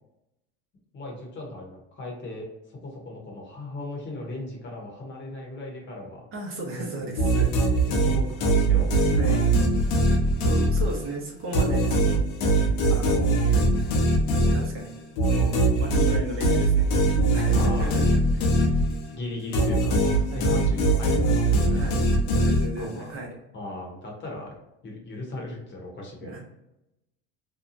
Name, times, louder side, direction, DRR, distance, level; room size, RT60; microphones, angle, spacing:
voice 1, 0.9-6.2 6.8-6.9 7.9-9.0 9.3-9.4 17.5-18.0 19.1-21.9 22.8-23.1 23.5-24.5 24.8-26.4, left 2 dB, 35° left, -1 dB, 0.9 m, -37 dB
voice 2, 6.3-7.8 9.1-9.4 10.4-12.2 12.5-13.6 14.5-14.9 15.3-18.7 20.3-20.6 21.7-22.0 22.4-23.3 26.2-26.4, right 2 dB, 40° right, 0 dB, 0.8 m, -35 dB
sound 1, 7.2-11.1 11.5-19.2 19.5-23.0, right 2 dB, 80° left, 0.8 m, -22 dB
2.8 x 2.2 x 2.5 m, 0.88 s
supercardioid pair, 120°, 34 cm